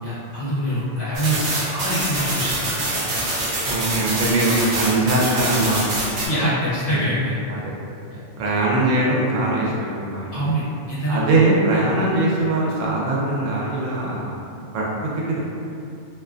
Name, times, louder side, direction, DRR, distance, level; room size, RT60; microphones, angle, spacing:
voice 1, 0.0-2.7 6.3-7.3 8.1-8.5 10.3-11.2, equal, 50° left, -11 dB, 0.9 m, -25 dB
sound 1, 1.1-6.3, right 2 dB, 50° right, 0.6 m, -25 dB
voice 2, 3.7-6.0 6.9-7.2 7.5-7.7 8.4-10.4 11.1-14.3 14.7-15.4, right 2 dB, 90° right, -5 dB, 1.0 m, -21 dB
2.5 x 2.2 x 2.4 m, 2.5 s
omnidirectional pair, 1.2 m